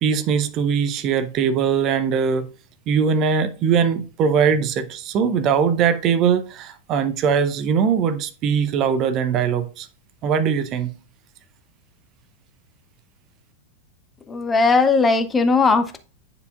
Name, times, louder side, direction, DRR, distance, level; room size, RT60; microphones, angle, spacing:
voice 1, 0.0-2.5 2.9-9.9 10.2-10.9, right 7 dB, 35° right, 0.6 m, -21 dB
voice 2, 14.3-16.0, left 4 dB, 15° left, 0.5 m, -18 dB
9.4 x 4.7 x 2.4 m
figure-of-eight pair, 90°, 0 cm